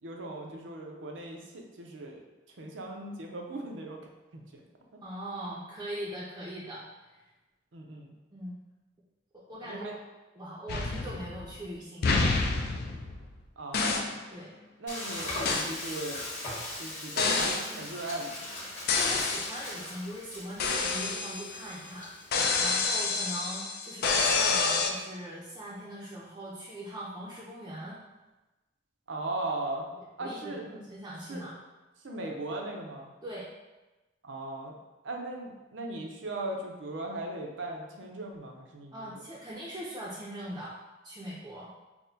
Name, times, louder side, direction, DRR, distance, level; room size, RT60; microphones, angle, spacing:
voice 1, 0.0-2.2 2.6-4.0 4.3-4.6 7.7-8.2 9.6-9.9 13.6-14.1 14.8-16.3 16.8-18.6 29.1-29.9 30.2-30.8 31.3-31.4 32.0-33.1 34.2-34.7 35.0-39.2, right 2 dB, 85° right, 1 dB, 0.6 m, -38 dB
voice 2, 5.0-7.2 8.3-8.6 9.3-10.0 10.4-12.5 14.3-14.5 18.9-28.0 30.2-30.6 30.9-31.5 33.2-33.4 38.9-40.8 41.0-41.7, right 1 dB, 20° right, -8 dB, 0.5 m, -40 dB
sound 1, 10.7-11.6 12.0-13.4 13.7-14.2 15.4-15.7 17.2-17.7 18.9-19.6 20.6-21.7 22.3-24.9, left 4 dB, 55° left, 0.4 m, -28 dB
Frying (food), 14.9-22.9, left 1 dB, 40° left, 1.3 m, -40 dB
5.8 x 2.1 x 2.7 m, 1.1 s
head